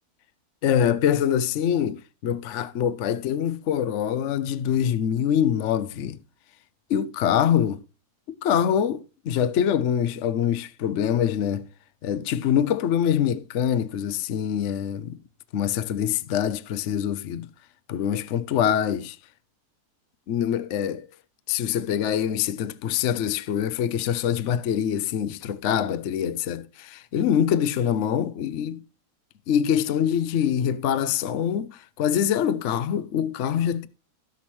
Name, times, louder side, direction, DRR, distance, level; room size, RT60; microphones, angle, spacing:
voice 1, 0.6-6.2 6.9-7.8 8.3-11.7 12.0-15.2 15.5-17.5 17.9-19.2 20.3-21.1 21.5-28.8 29.5-33.9, left 9 dB, 60° left, 0.8 m, -24 dB
16.5 x 6.0 x 3.1 m
omnidirectional pair, 1.7 m